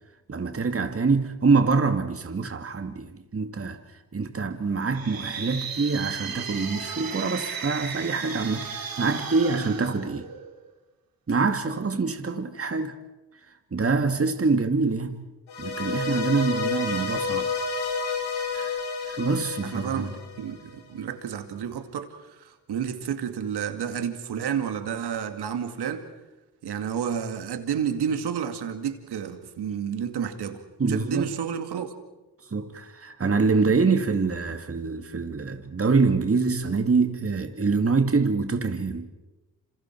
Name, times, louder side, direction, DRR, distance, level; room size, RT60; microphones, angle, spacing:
voice 1, 0.3-3.8 4.1-10.3 11.3-13.0 13.7-15.3 15.6-17.5 18.5-18.8 19.0-20.1 30.8-31.3 32.5-39.1, right 4 dB, 35° right, 2.3 m, -25 dB
sound 1, 4.8-10.7, right 6 dB, 60° right, 3.1 m, -35 dB
sound 2, 15.5-20.7, left 4 dB, 80° left, 4.6 m, -30 dB
voice 2, 19.4-26.0 26.6-31.9, right 8 dB, 80° right, 2.4 m, -31 dB
28.0 x 27.5 x 4.7 m
supercardioid pair, 55°, 39 cm